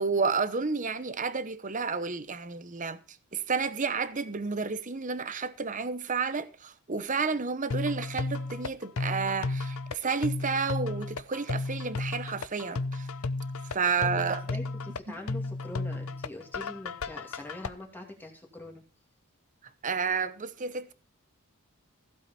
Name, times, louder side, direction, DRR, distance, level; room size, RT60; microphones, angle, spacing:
voice 1, 0.0-3.0 3.3-13.1 13.7-14.4 19.8-20.9, right 5 dB, 35° right, 0.9 m, -31 dB
sound 1, 7.7-17.7, left 3 dB, 75° left, 0.7 m, -33 dB
voice 2, 14.0-18.8, left 1 dB, 10° left, 2.4 m, -43 dB
15.5 x 8.2 x 4.3 m
head